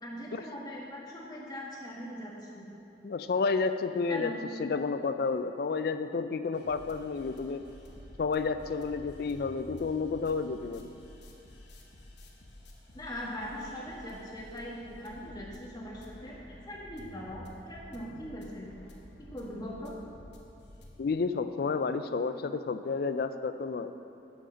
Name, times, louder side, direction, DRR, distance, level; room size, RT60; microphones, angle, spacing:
voice 1, 0.0-2.7 4.1-4.4 12.9-18.7 19.2-19.9, equal, 25° left, -4 dB, 1.4 m, -41 dB
voice 2, 3.0-4.3 4.6-7.6 8.2-10.9 21.0-23.9, left 4 dB, 60° left, 10 dB, 0.4 m, -31 dB
sound 1, 6.5-20.9, left 1 dB, 80° left, 1.1 m, -51 dB
6.7 x 6.5 x 6.3 m, 3.0 s
head